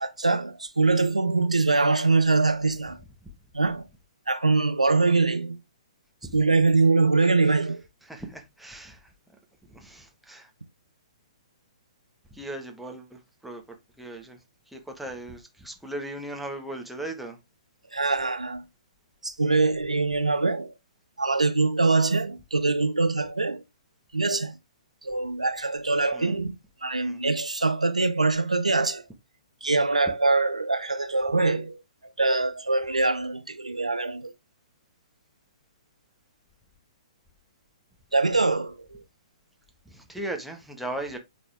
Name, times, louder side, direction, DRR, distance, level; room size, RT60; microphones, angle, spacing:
voice 1, 0.0-3.0 3.5-3.8 4.3-5.6 6.3-7.8 17.9-18.6 19.2-20.7 21.2-23.6 24.1-24.6 25.0-26.5 26.8-29.0 29.6-34.3 38.1-39.0, right 3 dB, 85° right, 0.8 m, -23 dB
voice 2, 8.0-9.1 9.6-10.5 12.3-13.6 14.0-14.4 14.7-17.4 26.1-26.4 27.0-27.2 39.8-41.2, right 1 dB, ahead, 1.5 m, -38 dB
8.5 x 4.3 x 3.5 m
figure-of-eight pair, 120°, 4 cm